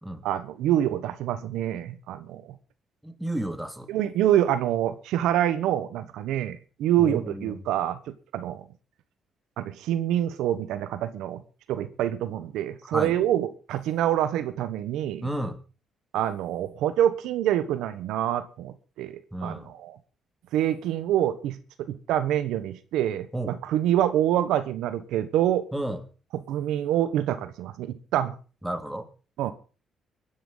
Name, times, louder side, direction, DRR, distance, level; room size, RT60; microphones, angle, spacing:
voice 1, 0.2-2.4 3.9-8.0 8.3-8.6 9.6-11.4 11.7-15.3 16.1-20.0 20.5-25.7 26.3-28.4 29.4-29.5, right 11 dB, 90° right, 12 dB, 1.2 m, -26 dB
voice 2, 3.0-3.9 7.0-7.6 12.9-13.2 15.2-15.6 19.3-19.7 23.3-23.6 25.7-26.0 28.6-29.1, right 1 dB, 5° right, 7 dB, 2.4 m, -32 dB
24.5 x 10.0 x 4.0 m, 0.36 s
cardioid pair, 90°, 0 cm